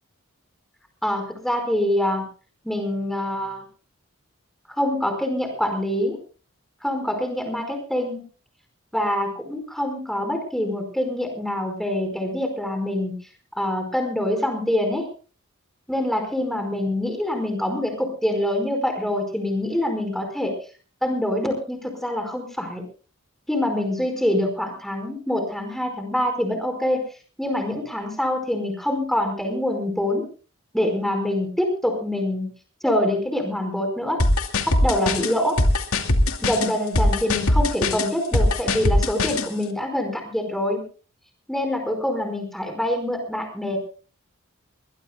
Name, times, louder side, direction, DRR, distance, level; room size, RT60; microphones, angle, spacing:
voice 1, 1.0-2.2 2.6-3.6 4.8-6.2 6.8-8.2 8.9-13.1 13.5-15.1 15.9-20.6 21.0-22.8 23.5-27.0 27.4-30.2 30.7-32.5 32.8-34.2 34.7-35.6 36.4-40.8 41.5-43.8, left 1 dB, ahead, 5 dB, 4.9 m, -25 dB
sound 1, 34.2-39.5, left 1 dB, 80° left, 2.4 m, -21 dB
22.5 x 21.0 x 2.3 m, 0.37 s
head